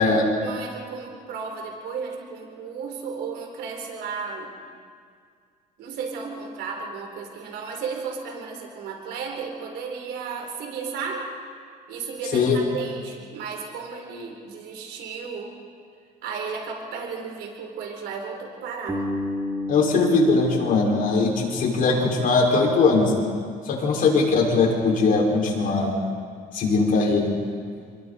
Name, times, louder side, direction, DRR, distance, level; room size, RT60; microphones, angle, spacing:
voice 1, 0.4-4.5 5.8-11.3 11.9-15.5 16.2-19.0, right 5 dB, 80° right, 2 dB, 4.1 m, -34 dB
Bass guitar, 18.9-22.8, left 2 dB, 15° right, 2.6 m, -33 dB
voice 2, 19.7-23.1 23.7-25.9 26.5-27.3, left 3 dB, 55° left, -2 dB, 5.9 m, -20 dB
28.5 x 21.0 x 4.4 m, 2.1 s
cardioid pair, 110°, 17 cm